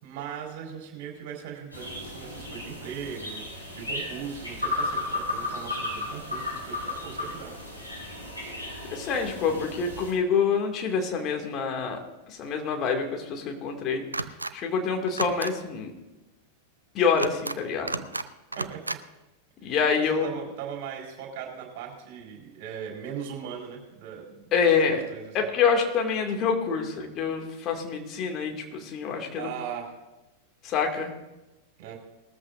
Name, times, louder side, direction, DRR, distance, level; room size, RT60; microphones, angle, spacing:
voice 1, 0.0-7.5 18.5-19.0 19.6-24.5 24.9-25.4 29.4-29.9 31.8-32.0, right 8 dB, 45° right, -1 dB, 4.8 m, -39 dB
sound 1, 1.7-10.1, left 2 dB, 90° left, 5.6 m, -34 dB
voice 2, 8.9-12.0 12.3-14.0 14.5-15.9 16.9-18.0 19.6-20.4 24.5-25.0 25.3-29.5 30.6-31.1, left 6 dB, 35° left, 2 dB, 2.4 m, -26 dB
sound 2, 14.1-14.5 15.1-15.5 17.1-17.6 17.9-18.3 18.5-19.0, right 2 dB, 80° right, 0.5 m, -32 dB
20.0 x 13.5 x 2.6 m, 1.0 s
figure-of-eight pair, 90°, 0 cm